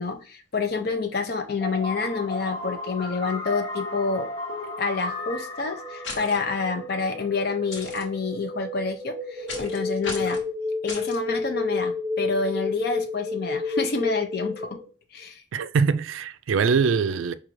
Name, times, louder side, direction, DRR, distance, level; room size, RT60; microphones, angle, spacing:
voice 1, 0.0-4.3 4.8-10.4 10.8-14.7 15.1-15.4, left 4 dB, 50° left, 0.5 m, -28 dB
sound 1, 1.6-7.4, left 2 dB, 25° left, 0.8 m, -35 dB
sound 2, 5.2-14.9, left 3 dB, 10° right, 0.9 m, -31 dB
sound 3, 6.0-6.4 7.7-8.0 9.5-9.8 10.0-10.4 10.9-11.2, left 3 dB, 70° left, 1.1 m, -35 dB
voice 2, 15.5-17.3, right 5 dB, 85° right, 0.4 m, -23 dB
5.0 x 2.4 x 3.0 m
head